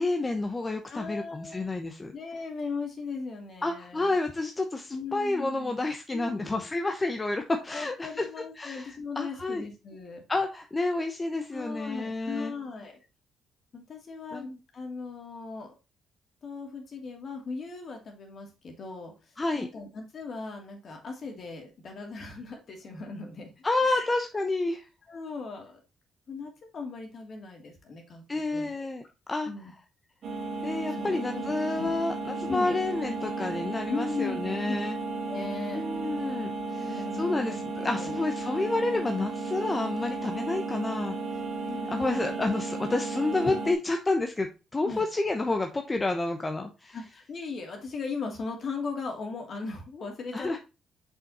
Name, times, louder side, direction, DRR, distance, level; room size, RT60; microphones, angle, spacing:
voice 1, 0.0-2.1 3.6-8.3 8.6-9.7 10.3-12.5 14.3-14.6 19.4-19.7 23.6-24.8 28.3-29.0 29.3-29.5 30.6-35.0 35.7-41.1 41.9-47.0 50.3-50.6, left 2 dB, 20° left, 5 dB, 0.9 m, -29 dB
voice 2, 0.9-1.7 2.1-4.1 4.9-5.8 6.1-6.9 7.7-10.2 11.5-13.0 13.7-15.7 16.4-19.1 19.5-24.1 24.3-24.6 25.1-25.8 26.3-28.9 29.5-29.7 30.9-31.5 31.8-31.9 32.5-32.8 33.9-35.8 36.7-37.6 37.9-38.2 41.7-42.4 44.8-45.0 46.9-50.6, left 4 dB, 50° left, 2 dB, 2.5 m, -38 dB
sound 1, 30.2-43.7, right 3 dB, 65° right, 1.6 m, -34 dB
6.2 x 5.4 x 4.2 m, 0.29 s
cardioid pair, 90°, 0 cm